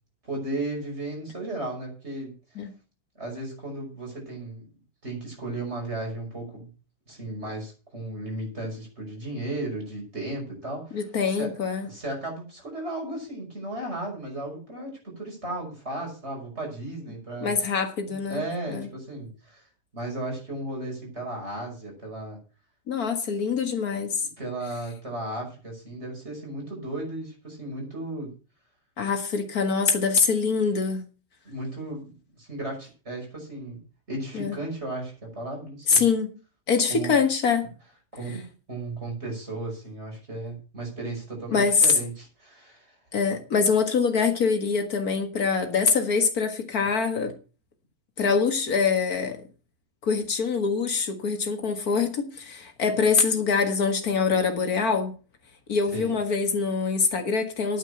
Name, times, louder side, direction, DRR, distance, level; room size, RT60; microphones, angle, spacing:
voice 1, 0.2-2.3 3.2-4.7 5.0-6.7 7.1-11.5 11.8-17.5 18.1-19.6 19.9-22.4 24.2-28.3 31.4-33.8 34.1-36.0 36.9-37.1 38.1-43.0 55.9-56.2, right 2 dB, 20° right, 5.8 m, -35 dB
voice 2, 10.9-11.9 17.4-18.4 18.7-18.9 22.9-24.2 29.0-31.0 34.3-34.6 35.9-36.3 36.7-37.7 41.5-41.9 43.1-47.3 48.2-49.4 50.0-55.2 55.7-57.8, left 5 dB, 45° left, 1.2 m, -24 dB
9.8 x 9.1 x 6.5 m
omnidirectional pair, 3.9 m